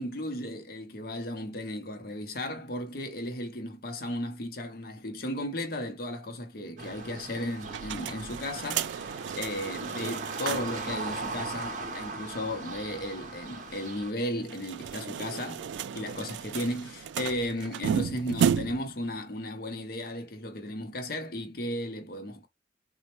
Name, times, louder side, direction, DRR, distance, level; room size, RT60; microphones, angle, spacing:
voice 1, 0.0-15.7 15.9-22.5, left 1 dB, 55° left, 0.7 m, -35 dB
sound 1, 6.8-14.1, right 3 dB, 45° right, 0.6 m, -39 dB
sound 2, 7.6-10.9 11.2-11.3 11.5-11.6 14.4-19.0, right 7 dB, 80° right, 0.3 m, -33 dB
4.1 x 2.1 x 2.9 m
head